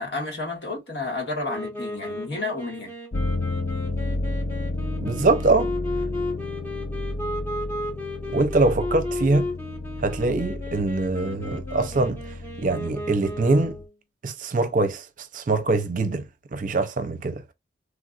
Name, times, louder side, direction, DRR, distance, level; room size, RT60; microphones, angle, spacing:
voice 1, 0.0-2.9, left 3 dB, 75° left, 1.7 m, -31 dB
Wind instrument woodwind instrument, 1.4-13.9, left 2 dB, 15° left, 1.1 m, -34 dB
sound 1, 3.1-13.8, left 2 dB, 45° left, 0.4 m, -32 dB
voice 2, 5.0-5.7 8.3-9.5 10.0-12.2 12.6-13.8 14.2-16.2 16.5-17.5, right 3 dB, 50° right, 0.6 m, -23 dB
3.3 x 2.4 x 2.4 m
head